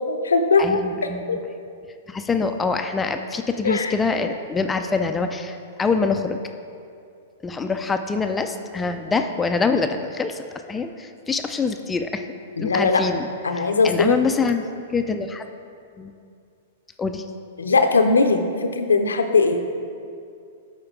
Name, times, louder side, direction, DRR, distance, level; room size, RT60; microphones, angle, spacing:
voice 1, 0.0-0.8 1.3-1.4 3.6-3.9 12.6-13.0 13.4-14.2 17.6-19.6, left 4 dB, 85° left, 6 dB, 0.6 m, -19 dB
voice 2, 0.6-1.4 2.1-6.4 7.4-10.4 10.7-12.3 12.6-13.3 13.5-15.5 16.0-16.1 17.0-17.2, left 4 dB, 15° left, 6 dB, 0.4 m, -25 dB
12.0 x 4.4 x 3.7 m, 2.4 s
hypercardioid pair, 110°, 0 cm